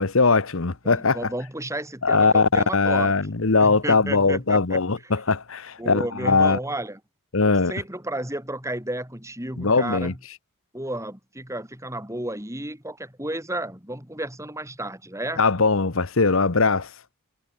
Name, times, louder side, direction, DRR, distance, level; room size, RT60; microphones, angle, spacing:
voice 1, 0.0-1.3 2.0-6.6 7.3-7.7 9.6-10.1 15.4-16.9, left 4 dB, 60° left, 1.1 m, -20 dB
voice 2, 0.8-3.1 3.6-4.8 5.8-7.0 7.7-10.2 10.7-15.4, right 1 dB, 15° right, 7.5 m, -32 dB
head